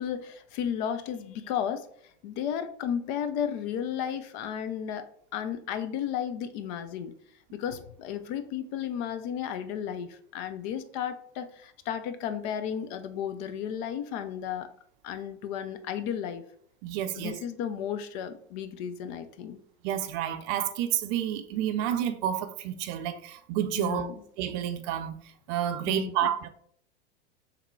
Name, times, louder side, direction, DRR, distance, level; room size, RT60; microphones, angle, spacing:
voice 1, 0.0-1.9 2.2-5.0 5.3-7.1 7.5-14.7 15.0-16.4 17.2-19.6 23.7-24.1 25.9-26.3, left 8 dB, 45° left, 0.5 m, -33 dB
voice 2, 16.8-17.4 19.8-24.1 24.4-26.5, right 11 dB, 40° right, 0.5 m, -30 dB
3.6 x 3.4 x 4.4 m
figure-of-eight pair, 90°, 33 cm